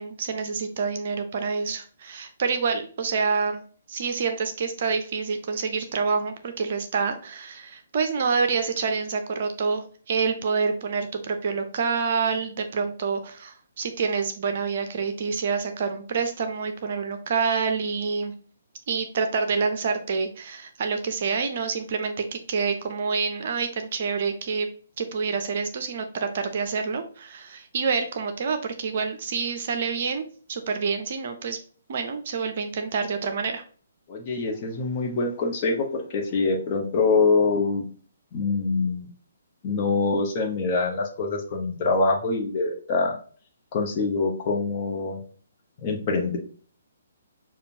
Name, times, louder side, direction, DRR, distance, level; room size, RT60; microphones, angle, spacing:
voice 1, 0.0-3.6 3.9-18.3 18.9-24.7 25.0-31.6 31.9-33.6, right 5 dB, 45° right, 6 dB, 0.6 m, -27 dB
voice 2, 34.1-37.8 38.3-39.1 39.6-43.1 43.7-45.2 45.8-46.4, left 3 dB, 30° left, 0 dB, 1.1 m, -24 dB
6.8 x 2.4 x 2.7 m, 0.43 s
figure-of-eight pair, 130°, 0 cm